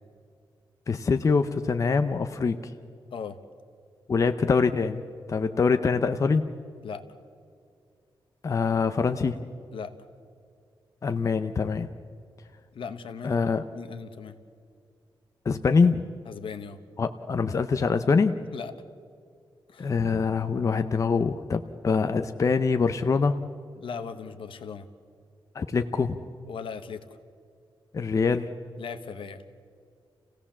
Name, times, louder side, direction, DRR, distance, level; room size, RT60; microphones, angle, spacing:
voice 1, 0.9-2.6 4.1-5.0 5.3-6.4 8.4-9.4 11.0-11.9 13.2-13.6 15.5-16.0 17.0-18.4 19.8-23.3 25.5-26.2 27.9-28.5, left 5 dB, 35° left, 8 dB, 0.6 m, -24 dB
voice 2, 12.7-14.4 16.3-16.8 18.5-18.7 19.7-19.9 23.8-24.9 26.5-27.0 28.8-29.4, left 6 dB, 75° left, 10 dB, 1.2 m, -38 dB
28.0 x 16.5 x 7.3 m, 2.3 s
wide cardioid pair, 170°, 9 cm